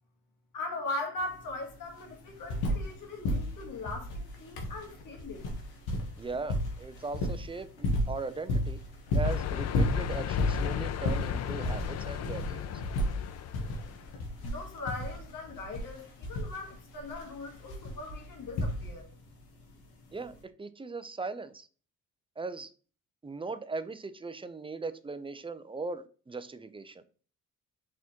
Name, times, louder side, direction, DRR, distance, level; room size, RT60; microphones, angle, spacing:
voice 1, 0.5-5.6 14.4-19.1, left 2 dB, 60° left, 1.6 m, -40 dB
sound 1, 1.2-1.3 1.5-3.0 3.2-19.2 20.3-20.4, left 1 dB, 80° left, 1.1 m, -33 dB
voice 2, 6.2-8.8 9.1-12.7 20.1-21.7 22.4-22.7 23.2-27.0, right 3 dB, 15° right, 0.4 m, -39 dB
sound 2, 9.2-14.1, left 9 dB, 45° left, 0.4 m, -34 dB
4.1 x 3.6 x 2.9 m
supercardioid pair, 60°, 37 cm